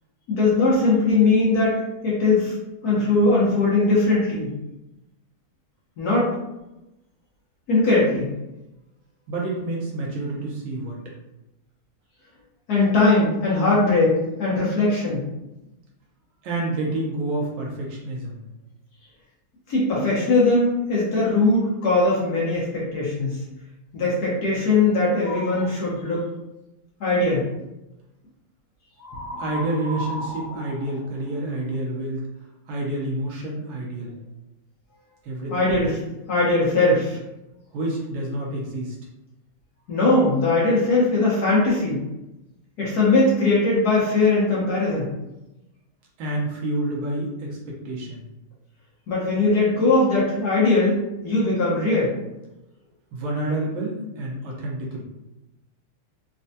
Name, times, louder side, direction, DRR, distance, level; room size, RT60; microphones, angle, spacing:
voice 1, 0.3-2.5 2.8-4.5 6.0-6.3 7.7-8.3 12.7-15.2 19.7-23.4 23.9-26.3 27.0-27.5 35.5-36.0 36.3-37.2 39.9-42.0 42.8-45.1 49.1-52.1, left 2 dB, 60° left, -6 dB, 1.3 m, -20 dB
voice 2, 9.3-11.0 16.4-18.4 29.4-32.3 32.7-34.1 35.2-35.6 37.7-39.0 46.2-48.2 53.1-55.0, right 2 dB, 75° right, -3 dB, 1.6 m, -28 dB
sound 1, 25.1-25.7 29.0-31.8, left 1 dB, 80° left, 1.5 m, -35 dB
4.2 x 2.3 x 2.7 m, 0.97 s
omnidirectional pair, 2.2 m